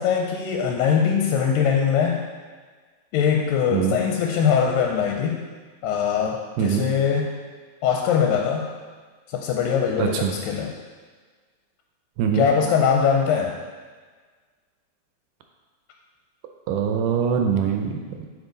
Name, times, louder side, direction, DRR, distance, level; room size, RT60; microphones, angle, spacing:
voice 1, 0.0-2.2 3.1-5.4 5.8-7.3 7.8-8.7 9.3-10.7 12.3-13.6, left 7 dB, 85° left, 1 dB, 2.3 m, -22 dB
voice 2, 10.0-10.3 12.2-12.5 16.7-18.3, right 7 dB, 80° right, 3 dB, 2.0 m, -23 dB
8.3 x 5.0 x 3.8 m, 1.5 s
omnidirectional pair, 4.0 m